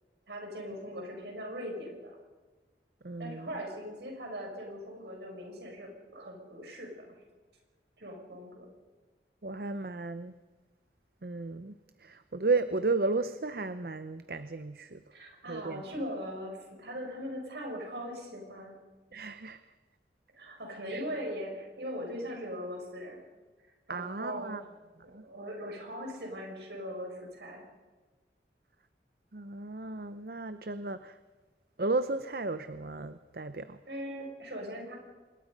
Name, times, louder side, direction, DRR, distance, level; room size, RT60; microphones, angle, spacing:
voice 1, 0.3-2.2 3.2-7.1 8.0-8.7 15.1-18.8 20.3-23.2 23.9-24.6 25.0-27.6 33.9-35.0, equal, 70° right, 1 dB, 6.4 m, -40 dB
voice 2, 3.0-3.5 9.4-10.3 11.2-11.7 12.0-15.0 15.5-15.8 19.1-19.6 20.9-21.0 23.9-24.6 25.1-25.2 29.3-31.2 31.8-33.8, right 3 dB, 55° right, 12 dB, 0.7 m, -33 dB
25.5 x 22.0 x 5.4 m, 1.3 s
head